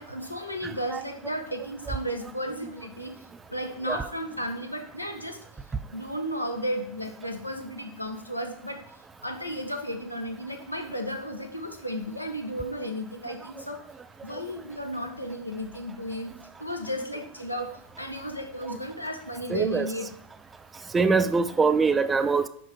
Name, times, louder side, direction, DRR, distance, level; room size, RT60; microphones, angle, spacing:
voice 1, 0.0-5.4 5.9-8.8 9.2-13.8 14.2-16.3 16.6-20.1, equal, 85° left, 5 dB, 0.9 m, -34 dB
voice 2, 19.5-19.9 20.9-22.5, right 4 dB, 15° right, 12 dB, 0.4 m, -23 dB
5.3 x 5.2 x 4.7 m, 0.68 s
figure-of-eight pair, 90°, 0 cm